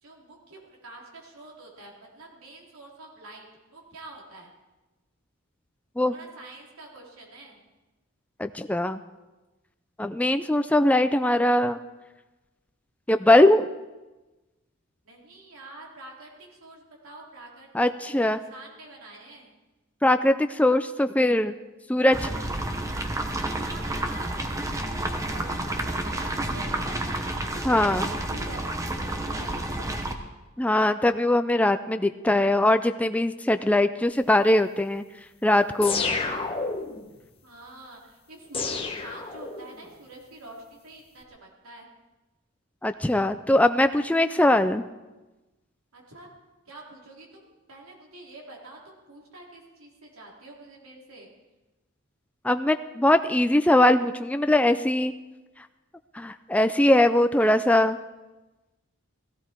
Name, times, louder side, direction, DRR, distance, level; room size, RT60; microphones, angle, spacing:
voice 1, 0.0-4.5 6.1-7.6 15.1-19.5 23.3-30.2 37.4-41.9 45.9-46.3 46.7-51.3 57.4-57.5, right 2 dB, 85° right, -2 dB, 3.7 m, -46 dB
voice 2, 8.4-9.0 10.0-11.8 13.1-13.7 17.7-18.4 20.0-21.5 21.9-22.4 27.7-28.0 30.6-35.0 35.4-36.0 42.8-44.8 52.4-55.1 56.1-58.0, left 1 dB, 5° left, 9 dB, 0.4 m, -21 dB
sound 1, 22.1-30.1, right 1 dB, 15° right, 1.0 m, -30 dB
sound 2, 35.8-37.1 38.5-39.8, left 4 dB, 25° left, 1.2 m, -29 dB
16.0 x 15.5 x 4.5 m, 1.1 s
head